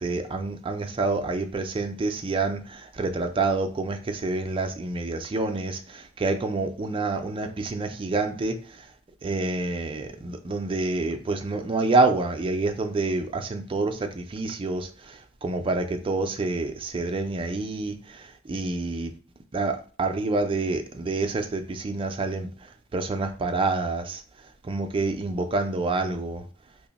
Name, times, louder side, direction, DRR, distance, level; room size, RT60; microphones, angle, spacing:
voice 1, 0.0-8.9 9.2-19.1 19.5-24.2 24.6-26.5, right 3 dB, 25° right, 0.4 m, -28 dB
2.9 x 2.1 x 3.9 m
head